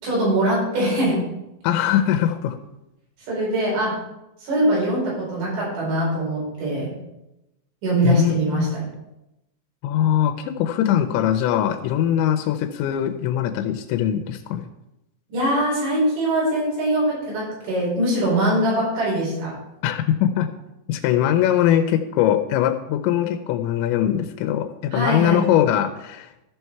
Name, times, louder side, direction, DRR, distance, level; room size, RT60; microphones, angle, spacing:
voice 1, 0.0-1.2 3.3-4.0 4.4-6.9 7.8-8.8 15.3-19.6 24.9-25.4, right 1 dB, 80° right, -6 dB, 6.9 m, -22 dB
voice 2, 1.6-2.6 8.0-8.7 9.8-14.7 19.8-20.5 20.9-26.5, left 10 dB, 85° left, 5 dB, 2.9 m, -21 dB
14.0 x 5.5 x 4.6 m, 0.91 s
omnidirectional pair, 5.2 m